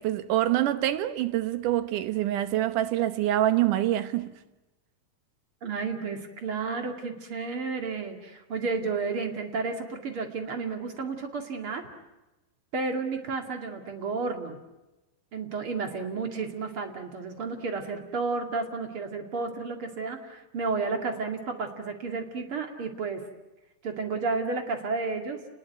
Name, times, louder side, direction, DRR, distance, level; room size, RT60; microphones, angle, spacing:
voice 1, 0.0-4.3, right 13 dB, 90° right, 2.7 m, -26 dB
voice 2, 5.6-11.9 12.7-14.6 15.3-23.2 23.8-25.4, right 4 dB, 45° right, 3.0 m, -32 dB
29.5 x 20.0 x 9.3 m
omnidirectional pair, 3.6 m